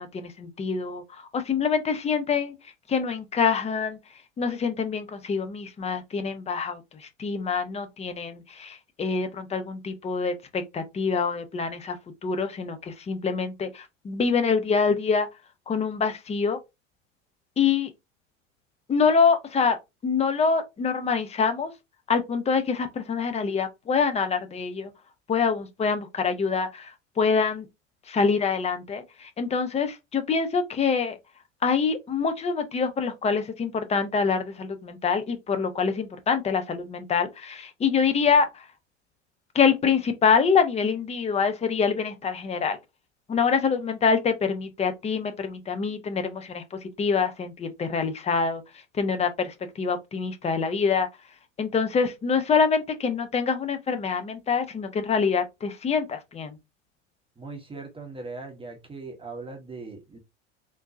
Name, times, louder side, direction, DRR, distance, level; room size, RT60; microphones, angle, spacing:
voice 1, 0.0-2.5 2.9-4.0 4.4-12.0 12.2-15.3 15.7-16.6 17.6-17.9 18.9-19.8 20.0-21.7 22.1-24.9 25.3-27.7 28.1-31.2 31.6-38.7 39.5-42.8 43.3-48.6 48.9-51.1 51.6-56.6, left 5 dB, 20° left, 0.6 m, -25 dB
voice 2, 57.4-60.2, right 3 dB, 15° right, 0.8 m, -39 dB
3.7 x 2.6 x 2.4 m
figure-of-eight pair, 80°, 37 cm